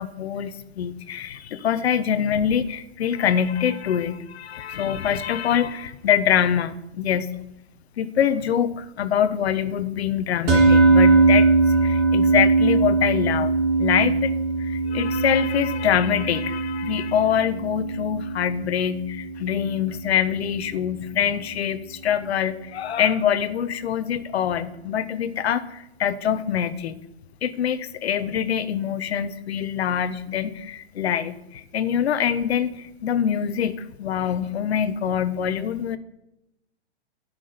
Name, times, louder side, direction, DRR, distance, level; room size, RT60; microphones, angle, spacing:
voice 1, 0.0-7.3 8.0-13.5 13.8-14.3 14.6-26.9 27.4-36.0, left 9 dB, 70° left, 13 dB, 1.1 m, -24 dB
sound 1, 10.5-20.9, right 3 dB, 35° right, 3.5 m, -21 dB
12.0 x 6.1 x 6.8 m, 0.88 s
hypercardioid pair, 155°, 33 cm